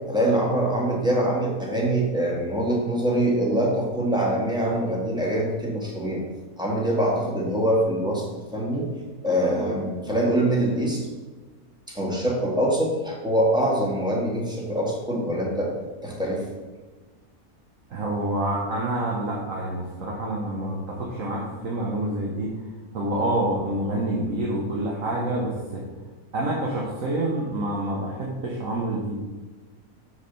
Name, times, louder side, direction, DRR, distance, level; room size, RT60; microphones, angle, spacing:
voice 1, 0.1-6.2 6.6-8.9 9.2-11.0 11.9-15.7 16.0-16.4, right 1 dB, 5° right, -3 dB, 1.7 m, -24 dB
voice 2, 17.9-22.5 22.9-25.8 26.3-29.1, right 1 dB, 60° right, -3 dB, 1.5 m, -27 dB
6.5 x 4.9 x 6.8 m, 1.3 s
omnidirectional pair, 1.6 m